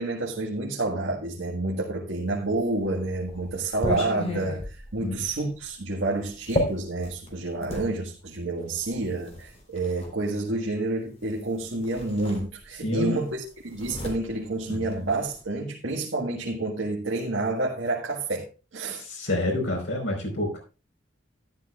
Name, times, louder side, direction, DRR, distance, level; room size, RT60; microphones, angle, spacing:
voice 1, 0.0-19.0, right 2 dB, 90° right, 1.7 m, -29 dB
sound 1, 2.5-7.9 8.8-10.1 11.4-11.5 11.8-12.9 13.2-15.4, left 1 dB, 35° left, 4.0 m, -34 dB
voice 2, 12.8-13.2 14.7-14.9 18.9-20.6, left 1 dB, 85° left, 4.5 m, -28 dB
13.0 x 11.5 x 2.4 m
head